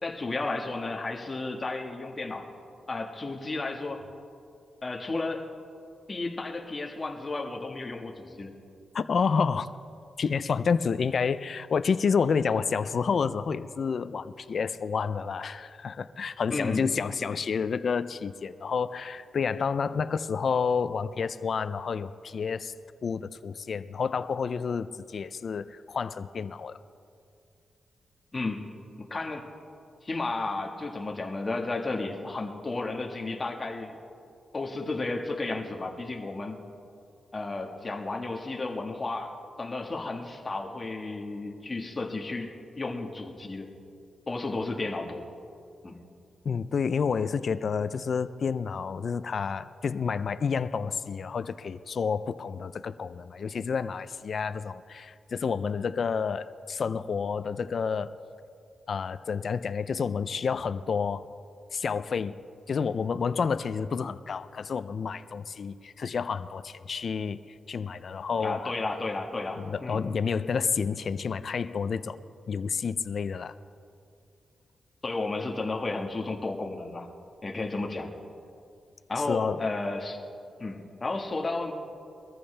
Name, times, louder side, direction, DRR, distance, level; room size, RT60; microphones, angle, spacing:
voice 1, 0.0-2.5 2.9-4.0 4.8-5.5 6.1-8.5 16.5-16.8 28.3-28.6 29.1-29.4 30.0-34.0 34.5-36.6 37.3-42.5 42.7-43.7 44.3-45.2 45.8-46.0 68.4-70.0 75.0-77.1 77.4-78.1 79.1-80.2 80.6-81.7, left 3 dB, 30° left, 2 dB, 1.5 m, -33 dB
voice 2, 8.9-9.7 10.2-22.7 23.0-26.8 46.4-58.1 58.9-61.3 61.7-62.4 62.7-67.4 67.7-68.7 69.6-72.2 72.5-73.6 79.3-79.6, left 6 dB, 60° left, 13 dB, 0.4 m, -29 dB
21.5 x 14.0 x 3.3 m, 2.5 s
cardioid pair, 95°, 0 cm